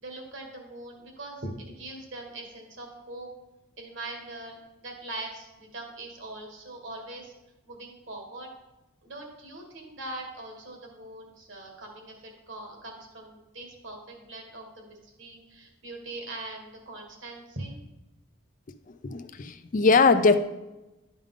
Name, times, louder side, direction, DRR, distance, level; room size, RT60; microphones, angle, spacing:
voice 1, 0.0-3.3 3.8-7.3 7.7-8.5 9.0-17.8, right 2 dB, 60° right, 2 dB, 1.7 m, -41 dB
voice 2, 19.0-20.4, left 4 dB, 40° left, 11 dB, 0.4 m, -21 dB
11.5 x 5.1 x 3.7 m, 1.0 s
head